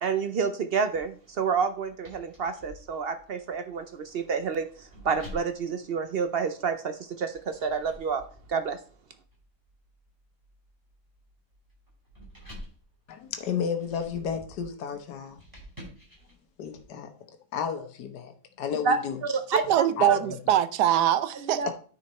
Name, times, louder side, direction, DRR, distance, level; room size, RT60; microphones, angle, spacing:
voice 1, 0.0-8.2 8.5-8.8 18.8-19.6 20.1-20.2 21.4-21.7, right 5 dB, 65° right, 0.6 m, -29 dB
sound 1, 0.9-6.7 7.3-16.8, equal, 10° right, 4.7 m, -50 dB
voice 2, 13.1-15.4 16.6-17.1 17.5-19.2 19.6-20.4 21.6-21.7, left 7 dB, 85° left, 1.5 m, -33 dB
voice 3, 19.5-21.6, right 11 dB, 85° right, 1.2 m, -23 dB
9.7 x 5.0 x 4.2 m
omnidirectional pair, 1.7 m